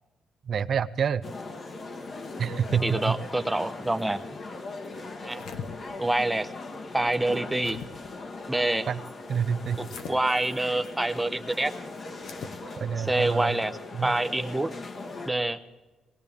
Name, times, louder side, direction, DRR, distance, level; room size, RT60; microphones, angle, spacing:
voice 1, 0.5-1.2 2.4-3.2 8.9-9.0 9.3-9.8 12.8-13.6 13.9-14.1, right 7 dB, 55° right, 16 dB, 0.5 m, -27 dB
sound 1, 1.2-15.3, left 3 dB, 45° left, 1.3 m, -40 dB
voice 2, 2.8-4.4 5.2-5.5 6.0-6.5 6.9-7.8 8.5-8.9 9.8-11.7 13.0-14.7 15.3-15.6, right 2 dB, 10° right, 9 dB, 0.7 m, -27 dB
sound 2, 5.1-5.7 7.1-7.9 9.8-10.2 12.2-12.6, left 7 dB, 80° left, 1.2 m, -41 dB
19.5 x 18.0 x 3.5 m, 1.2 s
cardioid pair, 90°, 0 cm